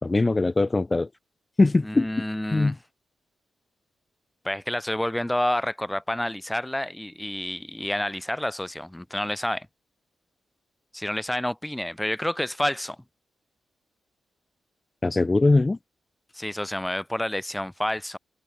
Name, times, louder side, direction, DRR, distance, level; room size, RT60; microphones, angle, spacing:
voice 1, 0.0-1.1 1.6-2.1 2.5-2.8 15.0-15.8, left 2 dB, 25° left, 3.6 m, -21 dB
voice 2, 1.8-2.7 4.4-9.7 10.9-13.0 16.3-18.2, left 1 dB, 10° left, 5.4 m, -29 dB
cardioid pair, 65°, 0 cm